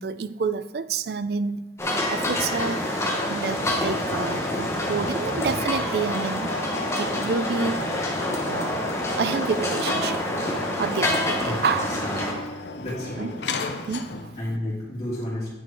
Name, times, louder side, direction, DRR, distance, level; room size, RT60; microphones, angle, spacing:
voice 1, 0.0-1.7 2.1-6.5 7.0-7.9 8.4-8.9 9.2-10.2 10.8-11.9 12.2-12.3 13.2-13.3 13.9-14.3, right 5 dB, 65° right, 0.4 m, -29 dB
sound 1, 1.8-12.3, left 1 dB, 15° left, 1.0 m, -27 dB
sound 2, 2.7-14.5, left 3 dB, 80° left, 0.6 m, -35 dB
voice 2, 12.7-13.3 14.4-15.5, left 1 dB, 40° left, 2.8 m, -31 dB
9.8 x 4.2 x 4.7 m
head